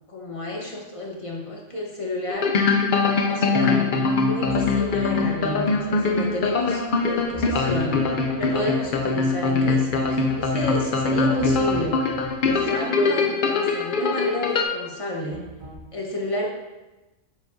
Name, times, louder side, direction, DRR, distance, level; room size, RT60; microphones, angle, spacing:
voice 1, 0.1-2.5 3.3-12.0 12.5-15.4 15.9-16.5, left 1 dB, 25° left, -2 dB, 1.1 m, -31 dB
sound 1, 2.3-14.6, left 4 dB, 50° left, 0.7 m, -22 dB
sound 2, 4.4-13.8 15.3-15.7, right 2 dB, 35° right, 2.5 m, -42 dB
7.4 x 7.3 x 2.6 m, 1.1 s
omnidirectional pair, 1.3 m